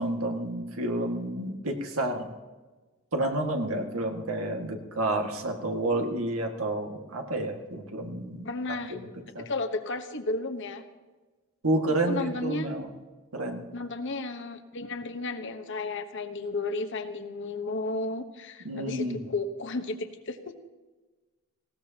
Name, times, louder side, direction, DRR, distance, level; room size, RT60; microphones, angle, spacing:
voice 1, 0.0-2.3 3.1-8.5 8.9-9.1 9.3-9.4 11.6-12.9 13.3-13.7 18.6-19.3, right 1 dB, 80° right, 3 dB, 1.9 m, -30 dB
voice 2, 8.4-9.0 9.4-10.8 12.0-12.7 13.7-20.4, left 2 dB, 60° left, 7 dB, 1.1 m, -33 dB
19.5 x 17.0 x 2.9 m, 1.3 s
head